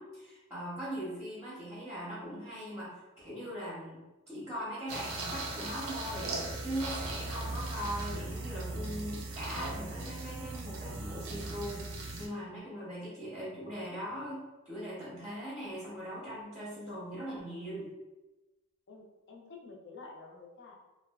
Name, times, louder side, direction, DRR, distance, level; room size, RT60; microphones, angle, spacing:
voice 1, 0.0-2.9 3.2-6.3 6.6-11.9 12.2-17.9, equal, 15° right, -7 dB, 0.6 m, -40 dB
sound 1, 4.9-12.3, right 2 dB, 90° right, 0.5 m, -38 dB
voice 2, 18.9-20.7, left 3 dB, 55° left, -1 dB, 0.5 m, -50 dB
2.6 x 2.3 x 2.2 m, 1.1 s
head